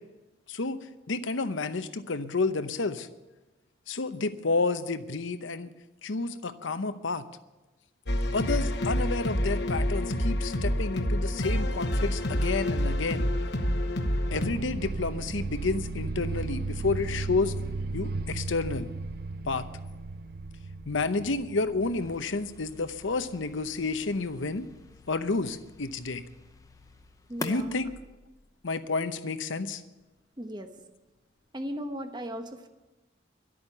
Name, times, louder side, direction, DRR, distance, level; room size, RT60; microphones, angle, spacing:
voice 1, 0.5-0.8 1.1-3.1 3.9-5.7 6.0-7.3 8.3-13.3 14.3-17.5 17.9-18.9 19.4-19.6 20.9-24.7 25.1-26.2 27.4-27.9 28.6-29.8, left 3 dB, 85° left, 11 dB, 0.8 m, -30 dB
sound 1, 8.1-14.5, equal, 65° left, 1.2 m, -28 dB
sound 2, 14.3-22.2, right 3 dB, 50° right, 0.5 m, -35 dB
sound 3, 21.9-28.8, left 2 dB, 20° left, 0.7 m, -46 dB
voice 2, 27.3-27.7 30.4-30.7 31.5-32.7, equal, 20° right, 7 dB, 1.0 m, -36 dB
12.5 x 8.7 x 10.0 m, 1.1 s
head